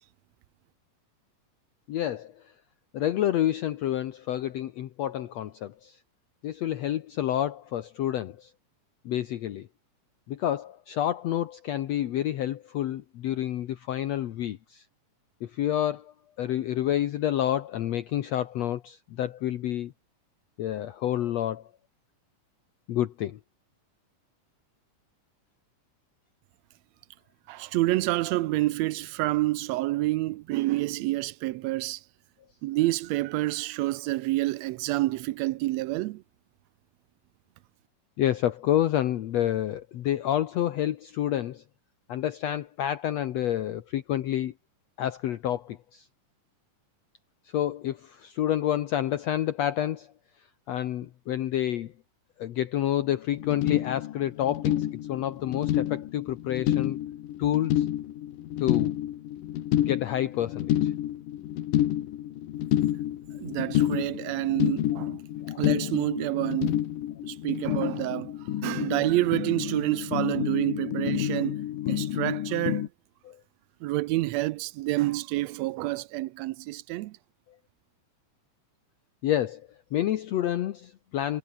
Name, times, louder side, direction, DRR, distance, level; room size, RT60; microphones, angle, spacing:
voice 1, 1.9-2.4 2.9-6.0 6.4-8.5 9.1-9.7 10.3-14.8 15.4-19.9 20.6-21.6 22.9-23.4 38.2-41.6 42.1-44.5 45.0-46.1 47.5-50.1 50.7-51.9 52.4-57.0 57.4-57.9 58.6-59.0 59.8-60.9 65.4-65.6 73.2-73.4 79.2-79.6 79.9-81.4, left 12 dB, 65° left, 2.0 m, -29 dB
voice 2, 27.5-32.0 32.6-36.2 63.4-65.2 65.6-66.8 67.2-72.9 73.8-77.2, right 18 dB, 90° right, 1.5 m, -28 dB
sound 1, 53.3-72.9, left 12 dB, 90° left, 3.0 m, -29 dB
omnidirectional pair, 3.7 m